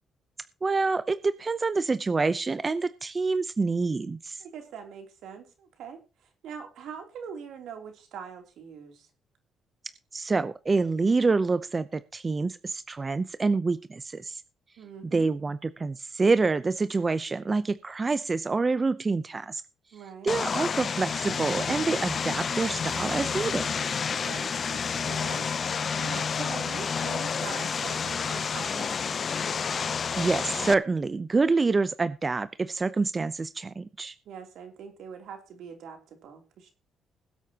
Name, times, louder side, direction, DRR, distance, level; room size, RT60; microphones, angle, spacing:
voice 1, 0.6-4.4 10.1-14.4 15.1-19.6 20.2-23.7 30.2-34.1, right 3 dB, 30° right, 13 dB, 0.6 m, -27 dB
voice 2, 4.4-9.1 14.8-15.3 19.9-20.3 24.0-25.5 26.0-28.9 34.2-36.7, right 7 dB, 80° right, 4 dB, 3.1 m, -43 dB
Vehicle, 20.3-30.7, left 6 dB, 45° left, 0.6 m, -30 dB
21.0 x 8.2 x 2.9 m, 0.31 s
cardioid pair, 90°, 0 cm